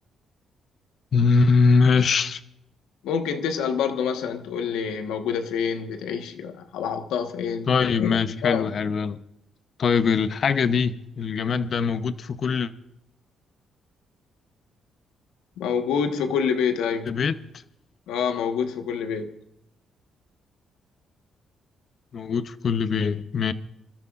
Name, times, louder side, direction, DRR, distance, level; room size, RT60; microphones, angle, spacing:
voice 1, 1.1-2.4 7.7-9.2 9.8-12.7 17.1-17.4 22.1-23.5, left 5 dB, 50° left, 0.8 m, -22 dB
voice 2, 3.0-8.7 15.6-17.1 18.1-19.4, left 7 dB, 90° left, 1.3 m, -27 dB
27.0 x 13.5 x 2.5 m
cardioid pair, 90°, 0 cm